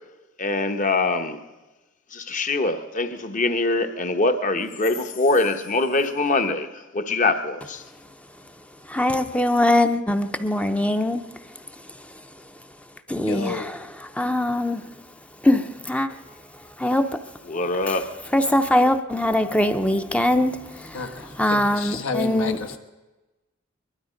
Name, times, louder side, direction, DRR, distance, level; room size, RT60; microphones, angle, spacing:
voice 1, 0.4-1.4 2.1-7.8 17.5-18.1, left 3 dB, 40° left, 1.0 m, -23 dB
voice 2, 8.9-11.3 13.1-13.8 14.1-14.9 15.4-16.1 16.8-17.0 17.9-18.0 18.3-21.0 21.4-22.6, left 1 dB, 5° left, 0.6 m, -22 dB
voice 3, 13.2-13.7 20.9-22.8, left 4 dB, 75° left, 1.4 m, -31 dB
21.5 x 12.5 x 5.1 m
head